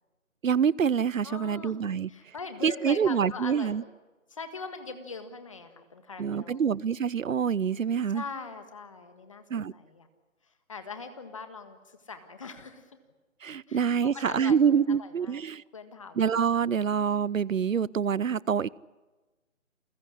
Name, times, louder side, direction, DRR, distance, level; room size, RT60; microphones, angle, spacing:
voice 1, 0.4-2.1 2.6-3.8 6.2-8.2 9.5-9.7 13.4-15.6 16.2-18.7, right 7 dB, 70° right, 24 dB, 0.7 m, -26 dB
voice 2, 1.2-1.7 2.1-3.9 4.3-6.7 8.1-10.1 10.7-12.8 13.7-14.6 14.9-15.4 15.7-16.2, left 4 dB, 25° left, 9 dB, 1.7 m, -41 dB
28.5 x 15.5 x 9.9 m, 1.2 s
figure-of-eight pair, 170°, 40 cm